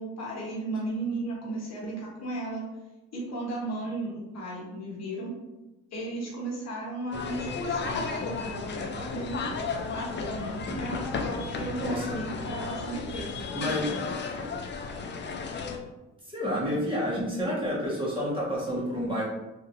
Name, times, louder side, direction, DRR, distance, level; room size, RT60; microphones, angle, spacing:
voice 1, 0.0-2.6 3.1-5.3 5.9-9.5 9.9-13.3, right 1 dB, 60° left, -4 dB, 1.2 m, -35 dB
sound 1, 7.1-15.8, left 4 dB, 40° left, 0.5 m, -34 dB
voice 2, 13.5-14.3 16.2-19.3, equal, 15° right, -6 dB, 1.4 m, -30 dB
3.6 x 2.8 x 2.6 m, 1.0 s
cardioid pair, 90°, 30 cm